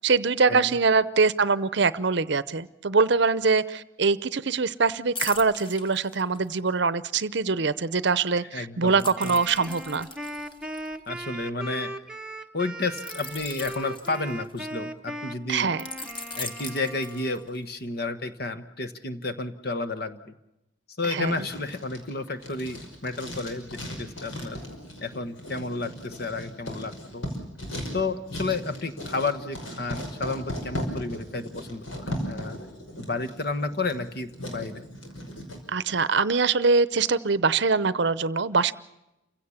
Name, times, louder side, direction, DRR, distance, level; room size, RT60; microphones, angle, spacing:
voice 1, 0.0-10.1 15.5-15.8 21.1-21.5 35.7-38.7, right 4 dB, 60° right, 17 dB, 0.7 m, -23 dB
sound 1, 5.2-6.7 9.0-11.7 12.9-14.8 15.8-17.6 18.1-18.3, left 3 dB, 25° left, 1.6 m, -39 dB
voice 2, 8.5-9.3 11.1-11.9 12.5-15.7 16.4-20.3 21.0-24.6 25.0-27.3 27.9-32.6 33.0-34.9, left 3 dB, 50° left, 10 dB, 1.3 m, -31 dB
Wind instrument woodwind instrument, 9.2-17.6, right 1 dB, 5° right, 1.0 m, -38 dB
Writing, 21.2-35.6, equal, 90° left, 5.8 m, -37 dB
28.5 x 16.5 x 7.2 m, 0.90 s
head